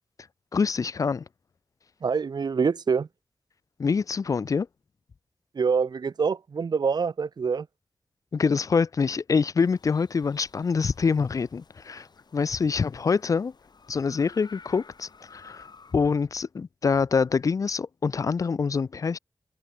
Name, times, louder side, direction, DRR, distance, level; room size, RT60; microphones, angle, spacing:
voice 1, 0.5-1.2 3.8-4.7 8.3-12.1 12.3-13.5 13.9-15.7 15.9-19.2, left 5 dB, 50° left, 0.3 m, -25 dB
voice 2, 2.0-3.1 5.5-7.7, right 5 dB, 70° right, 0.8 m, -25 dB
sound 1, 9.6-15.9, left 5 dB, 70° left, 5.5 m, -53 dB
cardioid pair, 50°, 7 cm